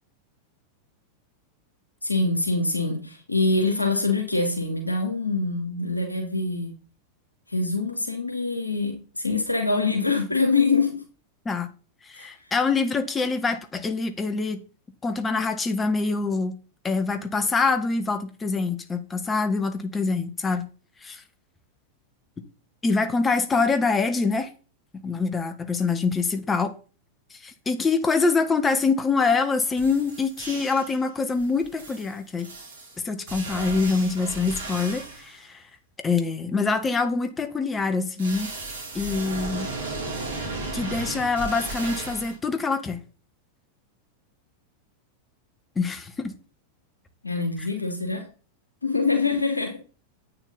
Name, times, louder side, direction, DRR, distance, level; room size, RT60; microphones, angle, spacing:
voice 1, 2.0-6.8 7.5-11.0 12.1-12.3 47.2-48.3 48.8-49.8, left 3 dB, 85° left, 2.5 m, -24 dB
voice 2, 12.0-14.6 15.0-16.5 16.8-20.7 21.0-21.2 22.8-24.5 25.0-26.7 27.3-32.5 33.0-35.6 36.0-38.5 38.9-39.7 40.7-43.0 45.8-46.3 47.6-47.7, left 4 dB, 15° left, 1.7 m, -25 dB
sound 1, 29.4-29.5 29.8-31.0 31.3-35.4 38.2-42.4, right 3 dB, 60° right, 5.0 m, -35 dB
10.5 x 9.0 x 4.2 m
figure-of-eight pair, 90°, 0 cm